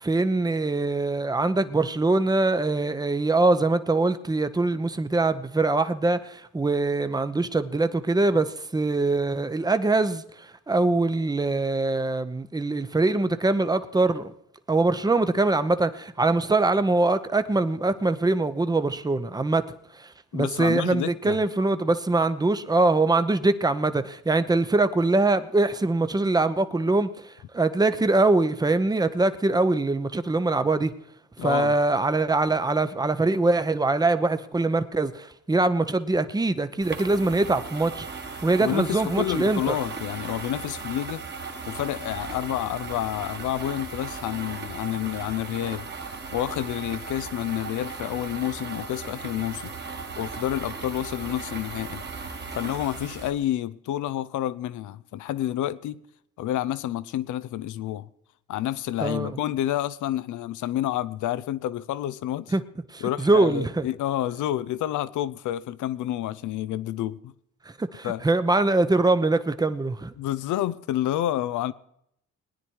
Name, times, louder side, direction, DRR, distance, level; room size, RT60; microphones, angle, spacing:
voice 1, 0.0-10.2 10.7-14.3 14.7-19.6 20.0-27.1 27.5-30.9 31.4-38.1 38.4-39.7 59.0-59.3 62.5-62.6 62.9-63.8 67.8-70.1, right 2 dB, 15° right, 0.8 m, -23 dB
voice 2, 20.3-21.4 31.4-31.7 38.6-41.2 41.7-45.9 46.3-49.7 50.2-52.0 52.5-56.0 56.4-58.1 58.5-62.5 63.0-67.3 68.0-68.2 70.2-71.7, left 12 dB, 80° left, 0.7 m, -29 dB
sound 1, 36.8-53.3, right 4 dB, 35° right, 1.7 m, -37 dB
19.5 x 9.8 x 4.7 m
cardioid pair, 90°, 30 cm